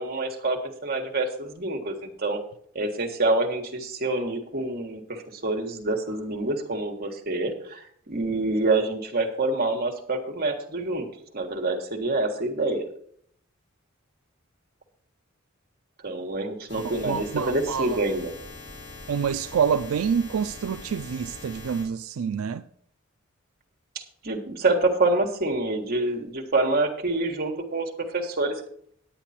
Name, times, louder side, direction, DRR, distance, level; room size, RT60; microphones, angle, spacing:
voice 1, 0.0-2.4 2.7-11.1 11.3-12.9 16.0-18.3 24.2-28.6, right 2 dB, 45° right, 1.6 m, -27 dB
sound 1, 16.7-21.9, left 2 dB, 55° left, 5.3 m, -42 dB
voice 2, 16.8-18.0 19.1-22.7, right 7 dB, 85° right, 0.4 m, -27 dB
10.0 x 9.0 x 4.3 m
head